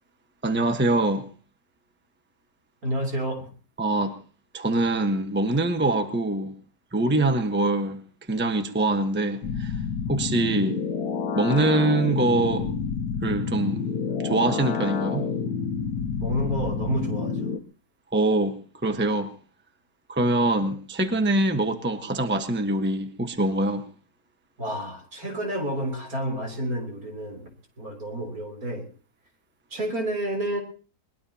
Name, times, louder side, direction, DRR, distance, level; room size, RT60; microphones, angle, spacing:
voice 1, 0.4-1.3 3.8-4.2 4.5-6.5 6.9-8.0 8.3-9.7 10.1-10.8 11.3-12.7 13.2-13.8 14.2-15.3 18.1-18.6 18.8-19.3 20.1-23.9, right 2 dB, 10° right, 1.0 m, -24 dB
voice 2, 2.8-3.5 16.2-17.5 20.6-20.7 24.6-27.5 27.8-28.9 29.7-30.6, right 1 dB, 65° right, 4.0 m, -30 dB
sound 1, 9.4-17.6, left 6 dB, 85° left, 1.6 m, -29 dB
22.0 x 21.0 x 2.9 m
omnidirectional pair, 1.7 m